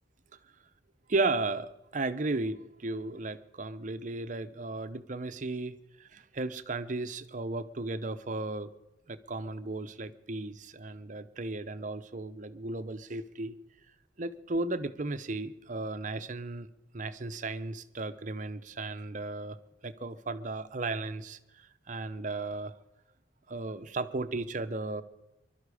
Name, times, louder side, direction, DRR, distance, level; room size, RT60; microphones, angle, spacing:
voice 1, 1.1-8.7 9.1-13.6 14.2-16.7 16.9-19.6 19.8-22.7 23.5-25.0, right 2 dB, 45° right, 10 dB, 0.7 m, -35 dB
22.5 x 12.0 x 4.9 m, 0.96 s
head